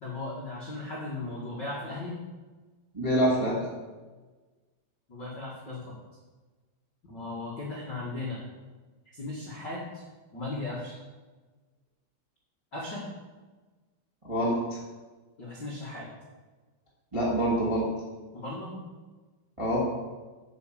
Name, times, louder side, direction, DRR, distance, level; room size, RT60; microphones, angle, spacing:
voice 1, 0.0-2.2 5.1-5.8 7.0-8.4 9.1-10.0 10.3-10.9 12.7-13.0 15.4-16.1 18.3-18.7, left 2 dB, 85° left, -6 dB, 0.9 m, -37 dB
voice 2, 2.9-3.6 14.2-14.8 17.1-17.9 19.6-19.8, right 1 dB, 20° right, -6 dB, 0.8 m, -26 dB
8.7 x 6.2 x 7.5 m, 1.3 s
omnidirectional pair, 5.3 m